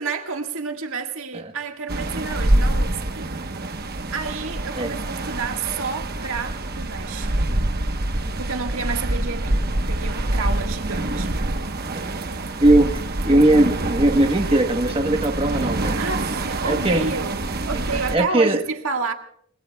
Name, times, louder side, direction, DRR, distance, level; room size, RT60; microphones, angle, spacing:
voice 1, 0.0-3.3 4.1-7.4 8.4-11.3 16.0-17.4 17.6-19.1, right 4 dB, 75° right, 1.7 m, -30 dB
sound 1, 1.9-18.2, right 1 dB, 50° right, 1.1 m, -26 dB
voice 2, 12.6-12.9 13.2-16.0 16.6-17.1 18.1-18.6, right 1 dB, 25° right, 1.2 m, -18 dB
29.5 x 20.5 x 2.3 m
head